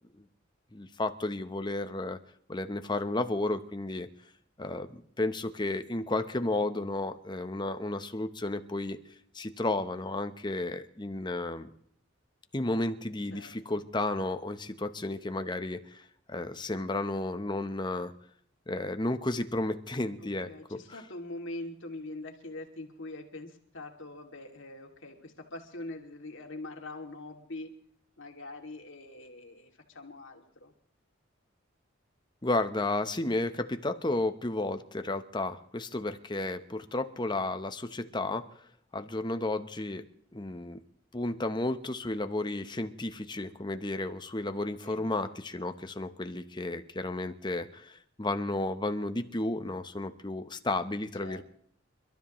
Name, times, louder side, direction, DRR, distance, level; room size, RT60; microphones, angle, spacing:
voice 1, 0.7-2.2 2.5-4.1 4.6-9.0 9.3-11.7 12.5-16.0 16.3-18.1 18.7-20.8 32.4-38.5 38.9-40.0 40.3-40.8 41.1-51.4, left 2 dB, 20° left, 9 dB, 0.9 m, -32 dB
voice 2, 13.3-13.8 20.2-27.7 28.2-30.7 44.8-45.1 51.2-51.4, left 2 dB, 70° left, 2 dB, 2.6 m, -43 dB
29.5 x 13.0 x 3.1 m, 0.65 s
head